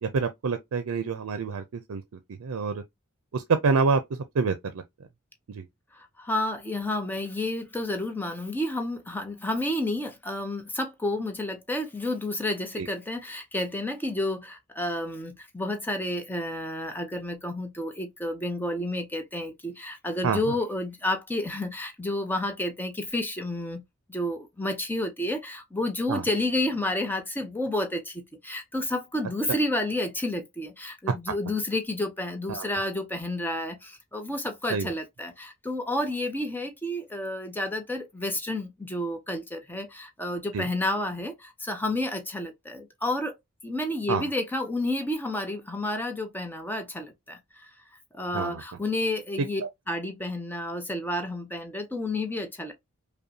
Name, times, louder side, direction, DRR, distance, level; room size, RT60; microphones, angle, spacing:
voice 1, 0.0-2.0 2.4-2.8 3.3-4.0 4.3-4.8 5.5-5.7 12.8-12.9 20.2-20.5 26.1-26.2 29.5-29.6 32.5-32.7 34.7-34.9 40.5-40.6 44.1-44.3 48.3-48.6, right 4 dB, 85° right, 0.5 m, -27 dB
voice 2, 5.9-23.8 24.1-43.3 43.6-47.7 48.1-49.6 49.9-52.7, left 1 dB, 10° left, 0.7 m, -30 dB
5.3 x 2.2 x 2.7 m
head